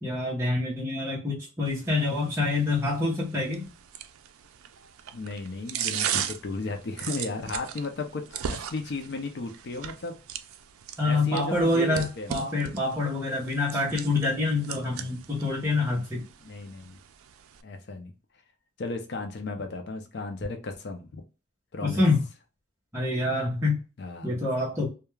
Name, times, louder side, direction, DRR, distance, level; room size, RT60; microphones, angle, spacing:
voice 1, 0.0-3.7 11.0-16.3 21.8-22.3 22.9-23.8 24.2-24.9, left 2 dB, 10° right, -6 dB, 0.7 m, -26 dB
sound 1, 1.7-17.6, right 9 dB, 80° right, 0.3 m, -38 dB
voice 2, 5.1-10.2 11.0-12.4 14.8-15.2 16.4-17.0 17.6-18.1 18.8-21.2 21.7-22.0 24.0-24.3, left 3 dB, 50° left, 5 dB, 0.4 m, -35 dB
2.3 x 2.2 x 3.0 m, 0.31 s
head